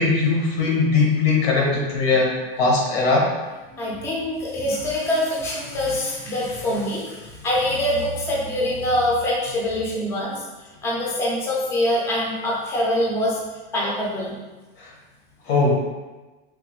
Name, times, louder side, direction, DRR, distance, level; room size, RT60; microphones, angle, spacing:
voice 1, 0.0-3.3 14.8-14.9 15.5-15.7, left 3 dB, 80° left, -2 dB, 1.1 m, -20 dB
voice 2, 3.7-10.4 10.8-13.4 13.7-14.4, left 1 dB, 10° left, -4 dB, 0.3 m, -24 dB
3.2 x 2.1 x 3.0 m, 1.2 s
supercardioid pair, 150°, 30 cm